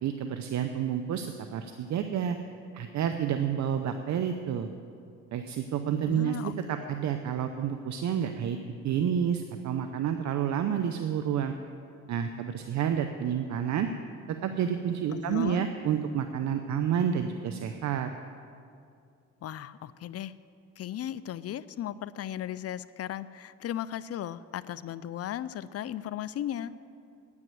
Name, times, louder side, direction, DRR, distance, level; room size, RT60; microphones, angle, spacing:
voice 1, 0.0-2.4 2.7-4.7 5.3-8.6 8.8-11.6 12.1-13.9 14.3-18.1, right 8 dB, 65° right, 7 dB, 0.7 m, -29 dB
voice 2, 6.1-6.9 15.1-15.7 19.4-20.4 20.8-26.7, left 11 dB, 55° left, 16 dB, 0.5 m, -36 dB
9.6 x 9.1 x 9.0 m, 2.4 s
cardioid pair, 90°, 30 cm